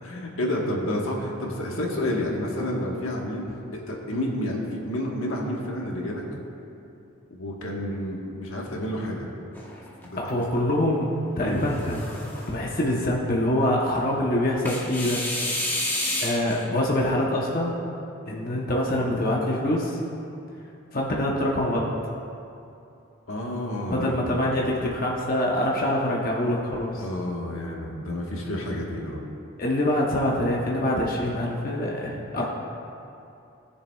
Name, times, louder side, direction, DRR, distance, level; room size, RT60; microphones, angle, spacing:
voice 1, 0.0-3.6 3.9-6.2 7.3-9.3 10.0-10.3 11.4-11.6 23.3-24.3 27.0-29.3, left 1 dB, 85° left, -1 dB, 1.4 m, -30 dB
sound 1, 9.6-10.4 11.5-12.6 14.7-16.6, left 1 dB, 10° left, 1.1 m, -30 dB
voice 2, 10.2-11.1 11.4-12.0 12.5-15.2 16.2-17.8 18.3-20.0 20.9-21.9 23.9-27.0 29.6-32.4, left 1 dB, 45° left, -3 dB, 0.9 m, -25 dB
17.5 x 6.9 x 2.3 m, 2.7 s
head